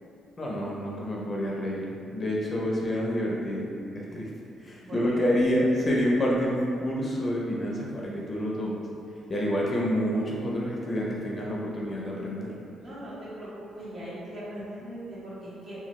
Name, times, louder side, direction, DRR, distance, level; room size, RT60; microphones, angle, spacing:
voice 1, 0.4-4.3 4.6-8.8 9.3-12.5, equal, 35° left, -3 dB, 0.5 m, -28 dB
voice 2, 4.8-5.4 12.8-15.8, right 1 dB, 50° right, -10 dB, 1.2 m, -40 dB
2.9 x 2.3 x 3.0 m, 2.5 s
cardioid pair, 90°, 0 cm